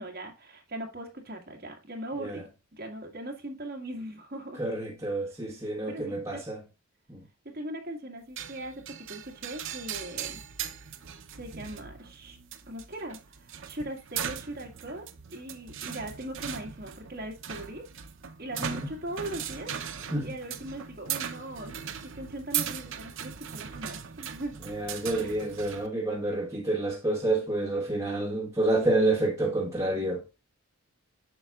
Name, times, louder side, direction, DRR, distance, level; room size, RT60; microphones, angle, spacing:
voice 1, 0.0-2.4 2.7-4.6 5.9-6.4 7.5-8.8 9.1-10.4 10.6-10.9 11.4-12.4 12.7-15.0 15.3-17.8 18.4-19.7 20.2-21.8 22.0-24.5 25.2-25.4, right 1 dB, 45° right, 1.8 m, -39 dB
voice 2, 4.6-6.6 7.1-7.2 18.6-18.9 20.1-20.3 24.7-30.2, right 2 dB, 15° right, 1.3 m, -28 dB
sound 1, 8.4-25.9, right 8 dB, 60° right, 0.7 m, -39 dB
7.8 x 5.9 x 2.4 m
head